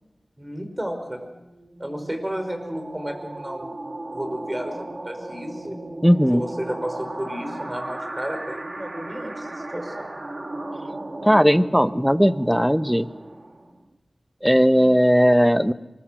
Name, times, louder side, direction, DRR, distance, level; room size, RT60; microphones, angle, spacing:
voice 1, 0.4-1.3 1.8-3.8 4.1-4.7 5.1-5.8 6.3-10.1, equal, 20° right, 6 dB, 5.1 m, -32 dB
sound 1, 1.2-13.9, right 2 dB, 50° right, 2.2 m, -36 dB
voice 2, 6.0-6.5 11.2-13.1 14.4-15.7, equal, ahead, 13 dB, 0.8 m, -17 dB
24.0 x 21.0 x 6.5 m, 1.0 s
wide cardioid pair, 45°, 0 cm